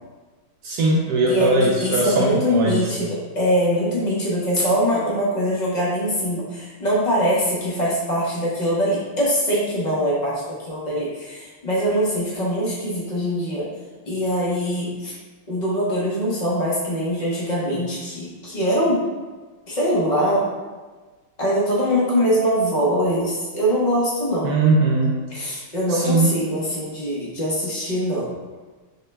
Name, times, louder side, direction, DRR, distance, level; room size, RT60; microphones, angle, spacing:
voice 1, 0.6-2.9 24.4-25.2 25.9-26.3, right 2 dB, 80° right, -3 dB, 0.9 m, -20 dB
voice 2, 1.3-13.6 14.0-15.1 15.5-19.0 19.7-20.5 21.4-24.6 25.3-28.3, equal, 85° left, -7 dB, 0.4 m, -22 dB
6.3 x 2.2 x 3.2 m, 1.3 s
omnidirectional pair, 2.3 m